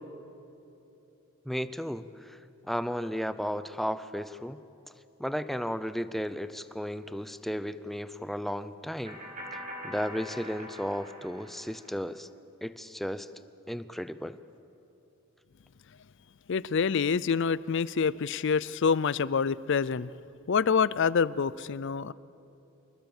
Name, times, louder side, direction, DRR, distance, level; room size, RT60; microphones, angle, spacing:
voice 1, 1.5-2.4 2.7-4.6 5.2-9.2 9.8-12.3 12.6-13.3 13.7-14.4, equal, ahead, 13 dB, 0.6 m, -34 dB
sound 1, 9.0-11.9, equal, 40° right, 5.9 m, -43 dB
voice 2, 16.5-20.1 20.5-22.1, left 6 dB, 60° left, 19 dB, 0.5 m, -26 dB
26.0 x 20.5 x 7.2 m, 2.9 s
head